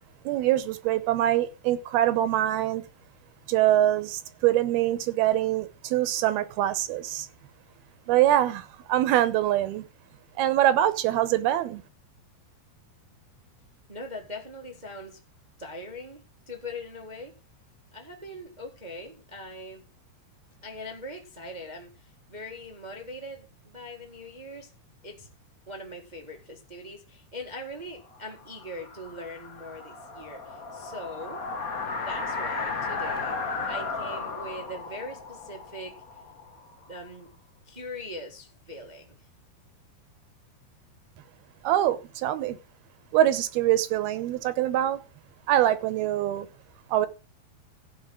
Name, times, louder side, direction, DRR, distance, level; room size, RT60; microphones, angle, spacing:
voice 1, 0.3-2.8 3.5-7.3 8.1-9.9 10.4-11.8 41.6-42.6 43.1-45.0 45.5-46.5 46.9-47.1, right 13 dB, 80° right, 2.9 m, -24 dB
voice 2, 13.9-15.2 15.6-17.3 17.9-19.8 20.6-24.7 25.0-25.3 25.7-31.4 32.0-33.4 33.7-36.0 36.9-37.3 37.6-39.2, left 1 dB, 60° right, 0.4 m, -41 dB
sound 1, 28.1-37.0, left 4 dB, 70° left, 0.8 m, -35 dB
15.0 x 5.3 x 6.4 m
omnidirectional pair, 4.5 m